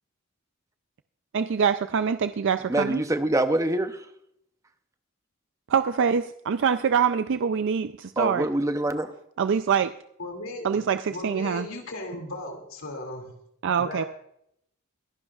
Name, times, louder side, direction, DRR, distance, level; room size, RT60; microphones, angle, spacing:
voice 1, 1.3-3.0 5.7-8.5 9.4-9.9 10.6-11.7 13.6-14.0, right 6 dB, 60° right, 11 dB, 0.4 m, -24 dB
voice 2, 2.7-4.0 8.2-9.1, right 1 dB, 15° right, 9 dB, 0.7 m, -25 dB
voice 3, 10.2-10.8 11.1-13.4 13.8-14.1, left 1 dB, 70° left, 3 dB, 2.5 m, -36 dB
23.5 x 11.5 x 2.4 m, 0.73 s
head